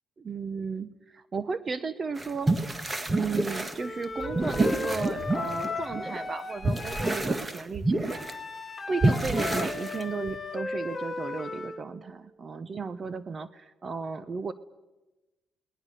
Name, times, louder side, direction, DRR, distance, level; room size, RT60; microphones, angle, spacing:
voice 1, 0.2-2.5 3.1-8.4 8.9-14.5, right 5 dB, 40° right, 13 dB, 1.0 m, -34 dB
sound 1, 2.2-6.3 6.6-8.3 9.0-10.4, right 2 dB, 20° right, 1.6 m, -28 dB
Wind instrument woodwind instrument, 3.8-7.3 8.1-11.8, left 3 dB, 25° left, 2.4 m, -36 dB
29.5 x 19.5 x 6.8 m, 1.1 s
cardioid pair, 90°, 0 cm